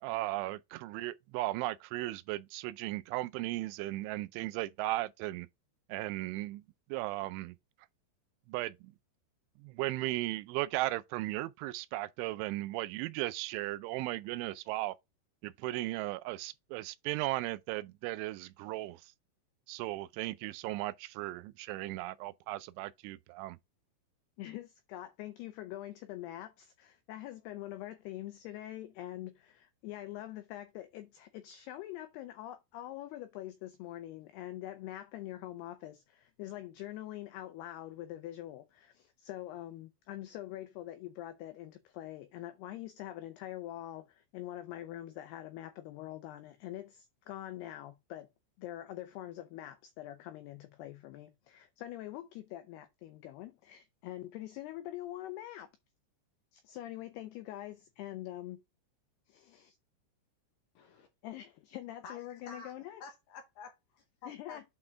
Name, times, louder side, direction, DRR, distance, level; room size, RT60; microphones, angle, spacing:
voice 1, 0.0-5.5 5.9-6.6 6.9-7.6 8.5-8.9 9.6-15.0 15.4-19.1 19.7-23.6, right 18 dB, 85° right, 3.0 m, -36 dB
voice 2, 24.4-48.3 48.6-55.7 56.5-58.6 59.3-59.8 61.2-63.0 64.3-64.6, left 14 dB, 90° left, 2.3 m, -44 dB
voice 3, 60.8-61.1 62.0-64.6, left 4 dB, 70° left, 2.8 m, -50 dB
8.7 x 4.0 x 3.4 m
omnidirectional pair, 5.5 m